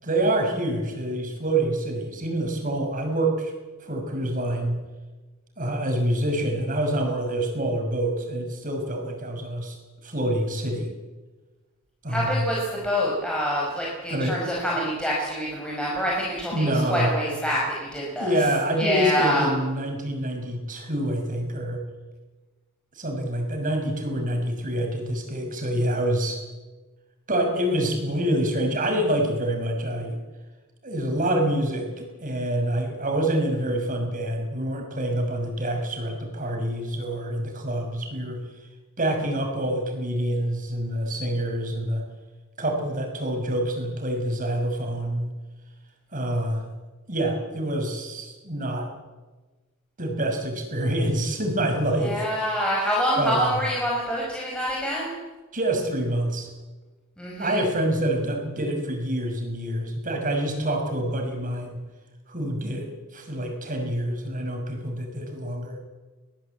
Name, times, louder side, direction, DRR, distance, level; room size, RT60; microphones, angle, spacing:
voice 1, 0.0-3.5 3.8-4.8 5.6-9.8 10.0-10.9 12.0-12.5 14.1-14.4 16.5-17.1 18.2-21.8 22.9-26.4 27.3-30.2 30.8-38.4 39.0-42.0 42.6-45.3 46.1-46.6 47.1-48.9 50.0-52.2 53.2-53.5 55.5-56.5 57.4-61.8 62.3-65.8, right 1 dB, 40° right, 3 dB, 6.1 m, -26 dB
voice 2, 12.1-18.5 18.7-19.5 52.0-55.2 57.2-57.6, equal, 5° left, -4 dB, 5.2 m, -26 dB
23.5 x 18.0 x 8.5 m, 1.2 s
head